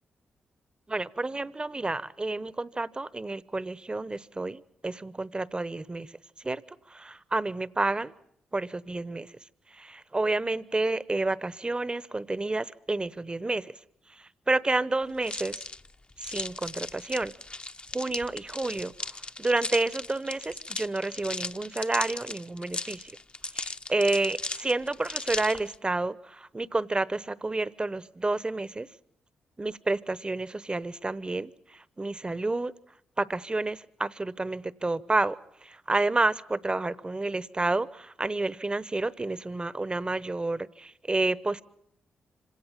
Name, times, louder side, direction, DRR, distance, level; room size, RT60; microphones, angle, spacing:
voice 1, 0.9-6.1 6.4-6.6 6.9-8.1 8.5-9.3 9.8-13.7 14.5-15.6 16.2-17.3 17.9-18.9 19.4-23.0 23.5-28.9 29.6-31.5 32.0-32.7 33.2-35.4 35.6-41.6, right 2 dB, 25° right, 1.0 m, -29 dB
sound 1, 15.2-25.7, left 3 dB, 30° left, 0.9 m, -37 dB
26.0 x 17.5 x 7.4 m
supercardioid pair, 50°, 4 cm